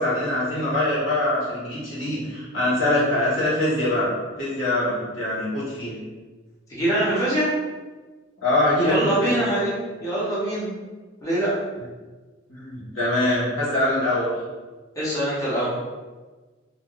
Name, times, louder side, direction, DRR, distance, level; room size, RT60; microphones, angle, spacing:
voice 1, 0.0-4.1 4.4-6.0 8.4-9.5 12.5-14.3, left 1 dB, 75° left, -8 dB, 1.3 m, -23 dB
voice 2, 6.7-7.5 8.8-9.7 10.0-10.7 11.2-11.5 15.0-15.7, right 1 dB, 15° left, -9 dB, 0.9 m, -23 dB
3.5 x 2.6 x 2.4 m, 1.3 s
head